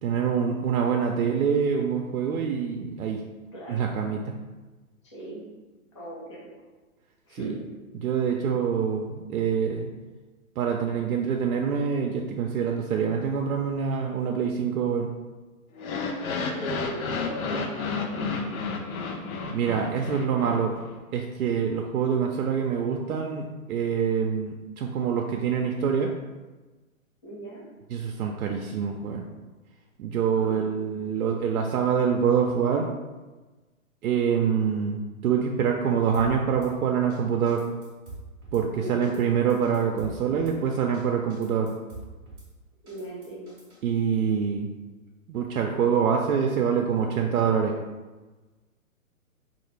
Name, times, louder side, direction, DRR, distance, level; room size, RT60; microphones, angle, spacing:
voice 1, 0.0-3.2 3.7-4.3 7.3-7.5 7.9-9.9 10.6-15.1 19.5-20.8 21.1-26.1 27.9-29.3 30.0-32.9 34.0-37.6 38.5-41.7 43.8-44.7 45.3-47.7, right 7 dB, 85° right, 1 dB, 0.5 m, -25 dB
voice 2, 3.5-3.9 5.0-5.5 5.9-6.4 7.3-7.6 16.5-18.5 27.2-27.6 30.3-31.1 38.8-39.2 42.8-43.5, right 1 dB, 25° left, -6 dB, 0.4 m, -39 dB
sound 1, 15.8-20.9, left 4 dB, 75° left, 0.6 m, -31 dB
Drum kit / Snare drum, 36.1-36.7 37.1-37.2 37.5-38.6 39.0-39.2 39.5-40.6 40.9-41.0 41.3-42.5 42.9-43.8, right 2 dB, 10° right, 0.7 m, -44 dB
3.2 x 2.4 x 3.2 m, 1.2 s
hypercardioid pair, 145°, 43 cm